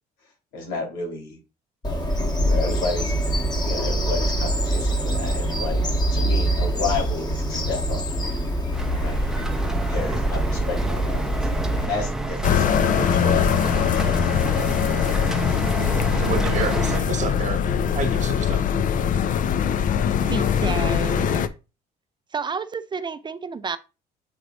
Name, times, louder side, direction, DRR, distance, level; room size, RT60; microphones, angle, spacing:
voice 1, 0.5-1.4 2.4-3.2 3.6-8.0 9.0-9.2 9.9-11.2 11.7-13.5, left 4 dB, 90° left, 3.1 m, -31 dB
Bird vocalization bird call bird song, 1.8-11.9, right 1 dB, 25° left, 1.7 m, -24 dB
sound 1, 8.7-17.0, right 1 dB, 5° right, 0.9 m, -29 dB
sound 2, 12.4-21.5, left 8 dB, 50° left, 0.6 m, -22 dB
voice 2, 16.2-18.6, right 6 dB, 45° right, 1.3 m, -30 dB
voice 3, 20.1-21.5 22.3-23.8, right 5 dB, 25° right, 0.5 m, -31 dB
7.8 x 3.3 x 3.9 m
cardioid pair, 110°, 17 cm